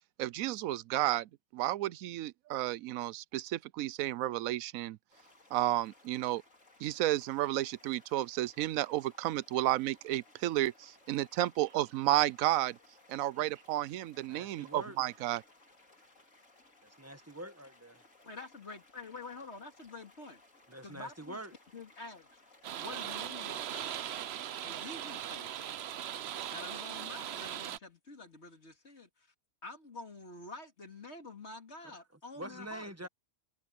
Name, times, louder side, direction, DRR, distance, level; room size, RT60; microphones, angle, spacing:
voice 1, 0.2-5.0 5.5-6.4 6.8-12.8 13.1-15.4, right 15 dB, 90° right, 1.0 m, -32 dB
sound 1, 5.1-22.8, left 2 dB, 70° left, 5.0 m, -62 dB
voice 2, 14.3-15.0 16.8-18.0 20.7-21.5 32.3-33.1, right 1 dB, 10° right, 1.4 m, -45 dB
voice 3, 18.2-20.4 20.8-21.4 21.7-22.3 22.8-24.0 24.6-25.6 26.5-29.3 29.6-33.1, left 3 dB, 55° left, 2.9 m, -47 dB
sound 2, 22.6-27.8, right 10 dB, 60° right, 0.8 m, -39 dB
omnidirectional pair, 1.4 m